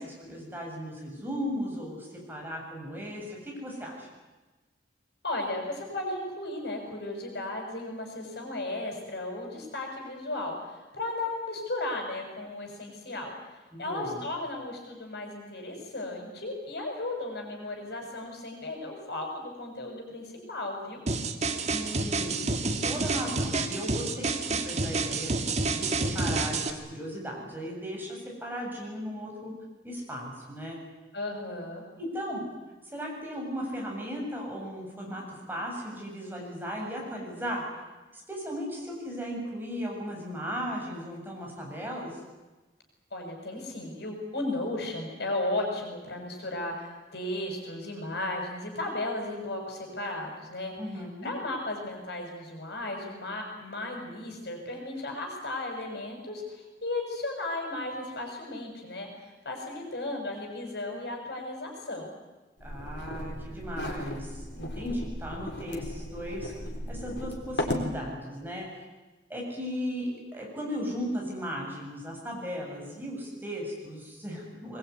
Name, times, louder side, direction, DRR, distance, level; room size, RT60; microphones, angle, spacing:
voice 1, 0.0-4.1 13.7-14.2 21.6-25.3 25.7-29.5 29.8-30.8 32.0-32.4 32.9-37.6 38.1-42.2 50.8-51.3 62.6-66.5 66.9-68.8 69.3-74.8, equal, 10° right, -2 dB, 7.6 m, -36 dB
voice 2, 5.2-13.3 13.8-21.0 31.1-31.8 43.1-50.7 51.2-62.1, left 2 dB, 70° left, 2 dB, 6.8 m, -35 dB
sound 1, 21.1-26.7, right 3 dB, 40° right, 2.0 m, -29 dB
sound 2, 62.6-67.9, left 1 dB, 90° left, 4.1 m, -36 dB
23.0 x 21.0 x 9.6 m, 1.2 s
head